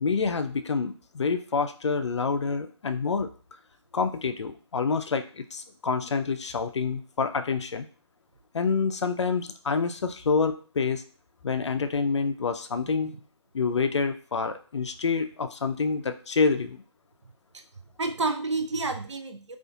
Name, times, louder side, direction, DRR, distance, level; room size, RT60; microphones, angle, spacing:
voice 1, 0.0-3.3 3.9-7.9 8.5-11.0 11.4-13.1 13.5-16.8, left 4 dB, 70° left, 8 dB, 0.4 m, -27 dB
voice 2, 12.9-13.2 18.0-19.6, right 3 dB, 70° right, 5 dB, 0.5 m, -30 dB
2.4 x 2.4 x 2.7 m, 0.40 s
figure-of-eight pair, 150°, 15 cm